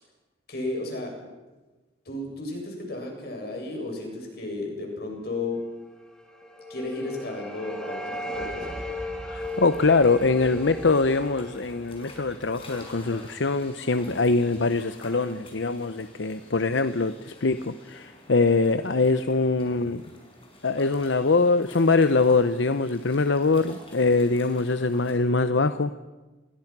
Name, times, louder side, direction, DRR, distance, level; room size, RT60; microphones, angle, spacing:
voice 1, 0.5-1.1 2.0-5.6 6.7-8.8, left 2 dB, 55° left, 1 dB, 7.9 m, -33 dB
sound 1, 6.1-13.1, left 1 dB, 5° left, 3.5 m, -37 dB
voice 2, 9.2-20.0 20.6-25.9, left 3 dB, 80° left, 11 dB, 0.8 m, -23 dB
sound 2, 9.4-25.1, left 1 dB, 30° left, 6.1 m, -49 dB
29.0 x 22.0 x 6.1 m, 1.2 s
head